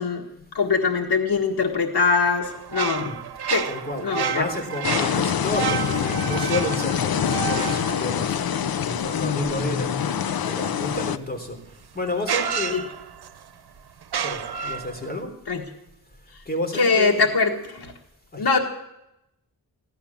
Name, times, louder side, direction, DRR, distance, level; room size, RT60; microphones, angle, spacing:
voice 1, 0.5-3.2 3.5-3.7 4.0-4.5 9.1-10.2 12.7-12.8 15.5-15.6 16.7-17.9 18.4-18.6, left 4 dB, 85° left, -1 dB, 1.8 m, -23 dB
sound 1, 2.4-9.0 11.4-11.5 12.2-13.4 14.0-15.2, right 8 dB, 75° right, 0.8 m, -30 dB
voice 2, 3.7-8.4 8.8-9.9 10.4-11.6 11.9-12.8 14.2-15.3 16.4-17.2 18.3-18.5, left 1 dB, 25° left, 3 dB, 3.4 m, -31 dB
sound 2, 4.8-11.2, left 8 dB, 65° left, 0.7 m, -25 dB
16.0 x 12.0 x 7.2 m, 0.86 s
wide cardioid pair, 110°, 39 cm